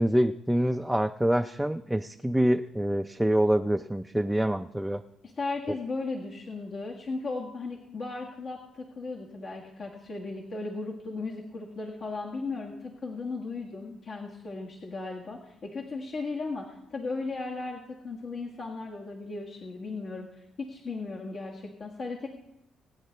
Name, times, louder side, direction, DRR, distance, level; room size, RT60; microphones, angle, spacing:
voice 1, 0.0-5.0 5.7-5.8, equal, 5° right, 6 dB, 0.4 m, -26 dB
voice 2, 5.2-22.3, left 3 dB, 55° left, -2 dB, 1.7 m, -36 dB
20.5 x 9.3 x 3.3 m, 0.88 s
cardioid pair, 90°, 0 cm